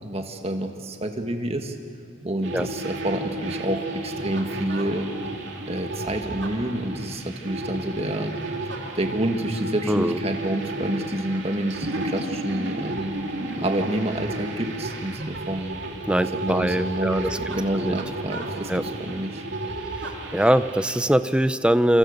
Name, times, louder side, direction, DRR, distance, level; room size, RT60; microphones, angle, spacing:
voice 1, 0.0-1.8 2.2-5.1 5.7-8.4 8.6-13.2 13.6-15.8 16.2-19.4, right 1 dB, 30° right, 5 dB, 1.8 m, -28 dB
sound 1, 2.4-21.0, right 1 dB, 65° right, 2.9 m, -32 dB
voice 2, 9.9-10.2 13.6-13.7 16.1-17.4 17.8-18.0 18.7-18.8 20.3-22.0, right 1 dB, 5° right, 12 dB, 0.6 m, -22 dB
27.5 x 26.0 x 6.6 m, 2.5 s
head